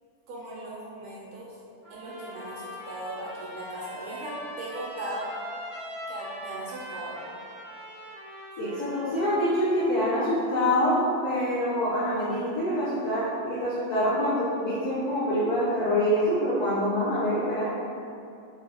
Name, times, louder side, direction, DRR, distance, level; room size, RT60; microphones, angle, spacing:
voice 1, 0.3-1.5 1.9-5.3 6.1-7.2, right 1 dB, 85° right, -5 dB, 1.4 m, -38 dB
Trumpet, 1.8-9.4, right 1 dB, 40° right, 0.6 m, -41 dB
voice 2, 8.6-17.6, equal, 75° left, -9 dB, 0.8 m, -25 dB
3.0 x 3.0 x 2.9 m, 2.6 s
omnidirectional pair, 2.3 m